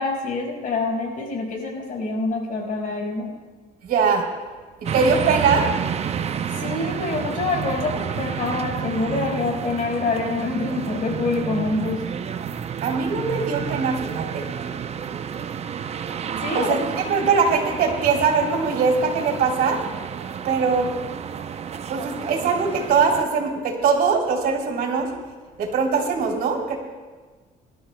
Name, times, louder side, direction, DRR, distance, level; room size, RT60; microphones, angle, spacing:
voice 1, 0.0-3.3 6.5-12.0 16.4-17.3, left 3 dB, 55° left, -1 dB, 4.9 m, -26 dB
voice 2, 3.8-4.2 4.8-5.7 12.8-14.5 16.5-19.8 20.4-20.9 21.9-25.1 25.6-26.8, right 5 dB, 65° right, 1 dB, 3.2 m, -21 dB
sound 1, 4.9-23.2, right 8 dB, 40° right, 0.6 m, -30 dB
25.5 x 12.5 x 2.2 m, 1.4 s
cardioid pair, 110°, 17 cm